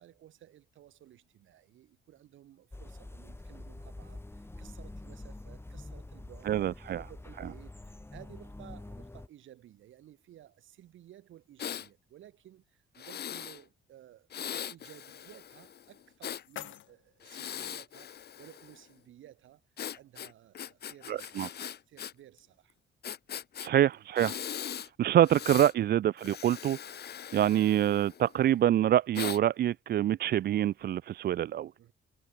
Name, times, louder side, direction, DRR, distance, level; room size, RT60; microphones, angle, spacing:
voice 1, 0.0-22.8 23.9-24.1 31.8-31.9, right 12 dB, 75° right, 3.7 m, -56 dB
sound 1, 2.7-9.3, left 2 dB, 10° left, 2.7 m, -46 dB
voice 2, 6.5-7.0 21.1-21.5 23.6-24.4 25.0-26.8 27.3-31.7, right 11 dB, 55° right, 0.4 m, -26 dB
Breathing, 11.6-11.9 13.0-13.6 14.3-16.4 17.2-18.8 19.8-22.1 22.4-22.5 23.0-23.7 24.2-24.9 25.2-25.7 26.2-28.4 29.1-29.4, left 9 dB, 55° left, 1.3 m, -40 dB
sound 2, 15.8-17.8, left 12 dB, 75° left, 3.4 m, -49 dB
cardioid pair, 90°, 20 cm